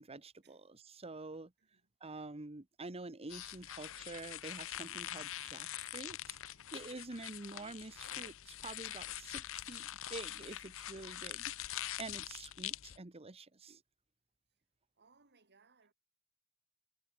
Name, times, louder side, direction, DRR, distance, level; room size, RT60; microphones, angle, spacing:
voice 1, 0.0-1.5 2.0-6.4 6.7-13.8, right 3 dB, 25° right, 1.1 m, -48 dB
voice 2, 1.6-1.9 14.9-15.9, right 4 dB, 50° right, 3.1 m, -69 dB
sound 1, 3.3-13.0, left 13 dB, 60° left, 0.9 m, -44 dB
head